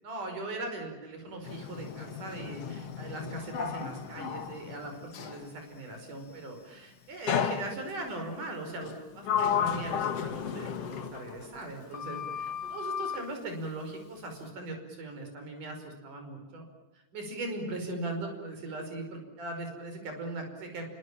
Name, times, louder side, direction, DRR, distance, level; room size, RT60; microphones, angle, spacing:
voice 1, 0.0-16.6 17.1-20.9, right 2 dB, 90° right, 4 dB, 7.0 m, -39 dB
Sliding door, 1.4-5.5 7.3-8.2 8.8-11.7 11.9-13.3, left 8 dB, 55° left, 2.6 m, -34 dB
29.0 x 25.0 x 7.5 m, 1.0 s
omnidirectional pair, 3.5 m